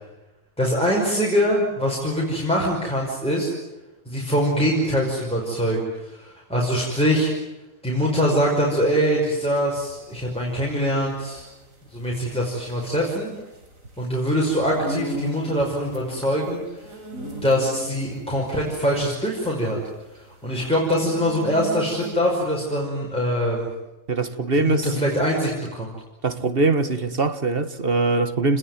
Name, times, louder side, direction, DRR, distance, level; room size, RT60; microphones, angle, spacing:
voice 1, 0.6-3.5 4.1-7.3 7.8-11.5 11.9-13.3 14.0-16.6 17.4-19.8 20.4-23.7 24.5-25.9, equal, 5° left, 5.5 m, -23 dB
sound 1, 8.3-22.5, right 1 dB, 70° right, 4.8 m, -37 dB
voice 2, 24.1-24.8 26.2-28.6, right 3 dB, 45° right, 1.6 m, -22 dB
28.0 x 21.0 x 9.5 m
omnidirectional pair, 1.4 m